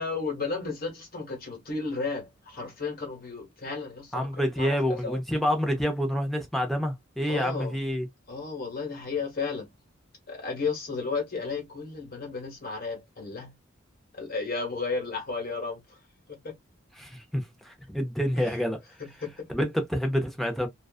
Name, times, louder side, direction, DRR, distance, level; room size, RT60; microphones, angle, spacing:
voice 1, 0.0-5.2 7.3-7.8 8.3-9.7 10.3-13.5 14.1-15.8 16.3-16.5 18.4-18.6 19.0-19.3, left 4 dB, 45° left, 1.2 m, -33 dB
voice 2, 4.1-8.1 17.0-18.8 19.5-20.7, equal, ahead, 0.5 m, -28 dB
2.4 x 2.3 x 2.3 m
head